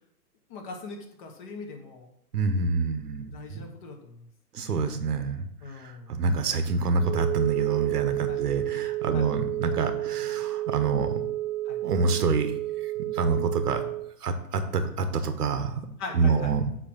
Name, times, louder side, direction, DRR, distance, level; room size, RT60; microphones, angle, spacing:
voice 1, 0.5-2.1 3.3-4.3 5.6-6.1 8.3-8.4 9.1-9.3 11.6-11.8 16.0-16.5, left 3 dB, 30° left, 2 dB, 1.5 m, -41 dB
voice 2, 2.3-3.6 4.5-5.5 5.8-11.1 11.8-12.5 13.1-13.8 14.2-15.9 16.1-16.6, right 4 dB, 80° right, 8 dB, 1.2 m, -27 dB
Wind instrument woodwind instrument, 7.0-14.1, right 16 dB, 55° right, 1.1 m, -30 dB
8.1 x 3.2 x 6.3 m, 0.72 s
hypercardioid pair, 145°, 46 cm